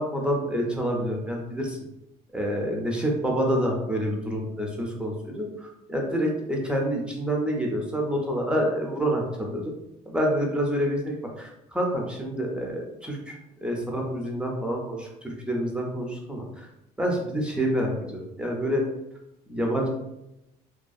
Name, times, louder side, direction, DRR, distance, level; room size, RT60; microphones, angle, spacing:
voice 1, 0.0-1.8 2.3-9.7 10.1-16.7 17.0-18.8 19.5-19.9, equal, 5° right, -1 dB, 0.4 m, -27 dB
2.5 x 2.3 x 2.3 m, 0.89 s
cardioid pair, 110°, 17 cm